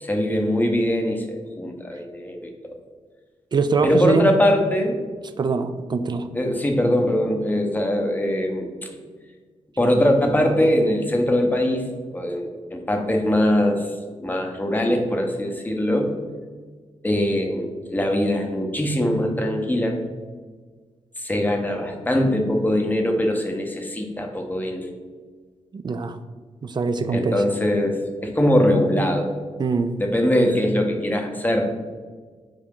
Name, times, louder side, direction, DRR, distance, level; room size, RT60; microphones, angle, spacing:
voice 1, 0.0-2.7 3.8-5.0 6.3-8.9 9.8-13.9 14.2-16.1 17.0-20.0 21.2-24.9 27.1-29.3 30.0-31.6, left 1 dB, 15° left, 2 dB, 0.7 m, -22 dB
voice 2, 3.5-4.3 5.4-6.3 25.7-26.2 26.6-27.4 29.6-29.9, right 4 dB, 40° right, 9 dB, 0.4 m, -23 dB
4.8 x 2.8 x 3.5 m, 1.5 s
cardioid pair, 65°, 12 cm